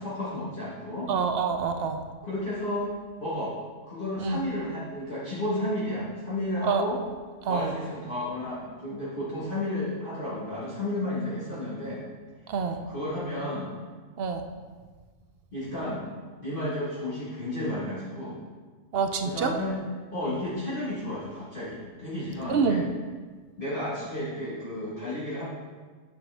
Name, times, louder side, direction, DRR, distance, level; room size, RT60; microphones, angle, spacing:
voice 1, 0.0-1.1 2.2-2.9 3.2-3.5 3.8-7.0 7.4-12.0 12.9-13.7 15.5-16.0 16.4-18.4 19.2-19.8 20.1-22.8 23.6-25.4, left 1 dB, 40° left, -10 dB, 1.7 m, -32 dB
voice 2, 1.1-2.0 4.2-4.4 6.6-6.8 7.5-7.7 12.5-12.8 14.2-14.5 18.9-19.5 22.5-22.9, right 6 dB, 60° right, 6 dB, 0.7 m, -26 dB
8.2 x 6.7 x 3.4 m, 1.5 s
omnidirectional pair, 1.5 m